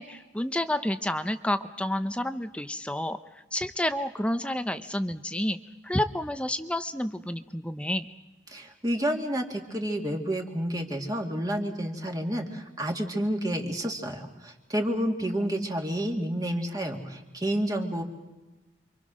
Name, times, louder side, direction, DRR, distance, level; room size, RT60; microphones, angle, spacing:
voice 1, 0.0-5.6 5.8-8.1, left 1 dB, 5° left, 10 dB, 0.8 m, -30 dB
voice 2, 8.5-18.0, equal, 20° right, 2 dB, 2.3 m, -30 dB
28.5 x 25.0 x 6.4 m, 1.1 s
head